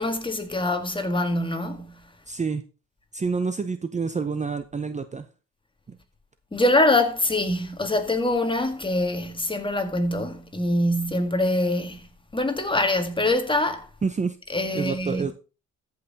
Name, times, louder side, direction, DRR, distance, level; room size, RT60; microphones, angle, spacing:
voice 1, 0.0-2.1 6.5-12.1 12.3-13.9 14.5-15.2, left 1 dB, 15° left, 1.8 m, -24 dB
voice 2, 2.3-2.6 3.1-5.3 5.9-6.0 14.0-14.4 14.7-15.3, right 5 dB, 25° right, 0.7 m, -28 dB
14.0 x 5.7 x 4.0 m
cardioid pair, 90°, 30 cm